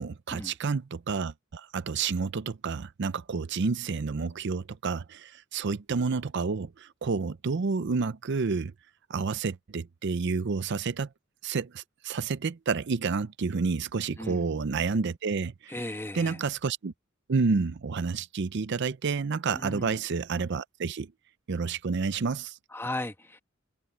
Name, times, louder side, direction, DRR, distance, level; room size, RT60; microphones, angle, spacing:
voice 1, 0.0-8.7 9.1-11.1 11.4-15.7 16.1-16.9 17.3-21.1 21.5-22.6, right 4 dB, 60° right, 0.5 m, -30 dB
voice 2, 14.2-14.5 15.7-16.4 19.5-20.0 22.7-23.4, left 1 dB, 10° left, 1.4 m, -36 dB
head